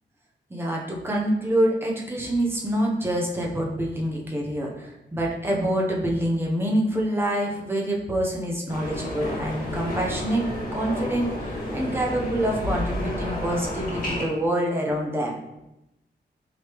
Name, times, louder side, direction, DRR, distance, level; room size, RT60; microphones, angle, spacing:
voice 1, 0.5-10.5 10.7-11.3 11.7-15.4, right 1 dB, 10° right, -1 dB, 0.6 m, -26 dB
sound 1, 8.7-14.2, left 1 dB, 50° left, 1.6 m, -31 dB
4.8 x 3.2 x 2.9 m, 0.90 s
wide cardioid pair, 165°, 19 cm